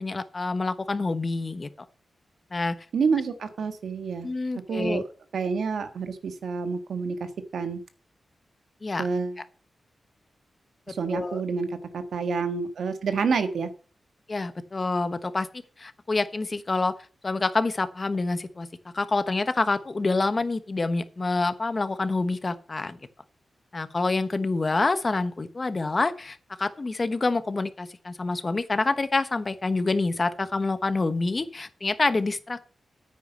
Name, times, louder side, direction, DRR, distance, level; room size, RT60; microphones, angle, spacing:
voice 1, 0.0-1.7 2.5-2.8 4.2-5.0 8.8-9.1 10.9-11.4 14.3-15.5 15.8-16.9 17.2-23.0 23.7-32.6, left 3 dB, 35° left, 12 dB, 1.1 m, -27 dB
voice 2, 2.9-4.3 4.7-5.0 5.3-7.8 9.0-9.4 10.9-11.7 11.9-13.7, right 5 dB, 85° right, 9 dB, 1.6 m, -28 dB
9.3 x 9.2 x 5.5 m, 0.39 s
wide cardioid pair, 110°, 0 cm